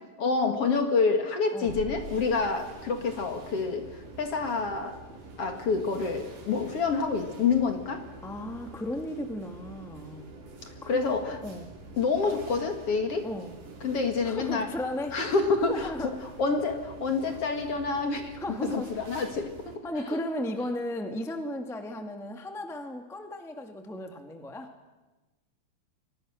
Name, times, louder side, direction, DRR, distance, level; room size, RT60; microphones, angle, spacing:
voice 1, 0.2-5.0 5.4-8.1 10.9-11.4 12.0-13.3 13.8-14.7 15.1-20.2, left 4 dB, 50° left, 6 dB, 2.4 m, -28 dB
sound 1, 1.6-19.8, right 2 dB, 70° right, 5.4 m, -46 dB
voice 2, 8.2-10.3 10.8-10.9 11.4-11.6 13.2-13.5 14.2-15.2 15.7-16.1 18.4-18.9 19.8-24.7, left 1 dB, ahead, 5 dB, 1.3 m, -35 dB
29.5 x 23.5 x 6.5 m, 1.1 s
omnidirectional pair, 4.0 m